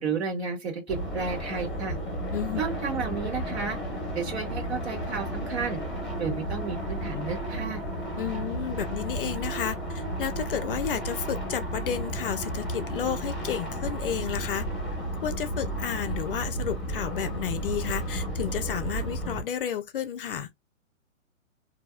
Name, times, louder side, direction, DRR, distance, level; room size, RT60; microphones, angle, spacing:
voice 1, 0.0-2.0 2.6-3.8 4.1-5.8 6.2-7.8, right 5 dB, 55° right, 1.5 m, -32 dB
sound 1, 0.9-19.4, right 1 dB, ahead, 1.1 m, -33 dB
voice 2, 2.3-2.6 8.2-14.7 15.2-20.5, left 9 dB, 45° left, 0.5 m, -32 dB
4.0 x 2.7 x 2.2 m
hypercardioid pair, 130°, 40 cm